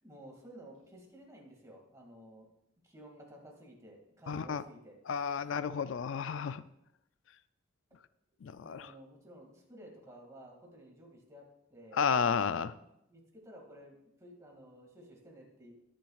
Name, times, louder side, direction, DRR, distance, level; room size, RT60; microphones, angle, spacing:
voice 1, 0.0-2.5 2.8-5.0 8.5-12.1 13.1-15.7, right 1 dB, 15° right, -1 dB, 2.2 m, -54 dB
voice 2, 4.3-4.6 5.1-6.6 8.4-8.9 11.9-12.7, left 6 dB, 70° left, 14 dB, 0.4 m, -32 dB
21.0 x 7.3 x 2.4 m, 0.82 s
head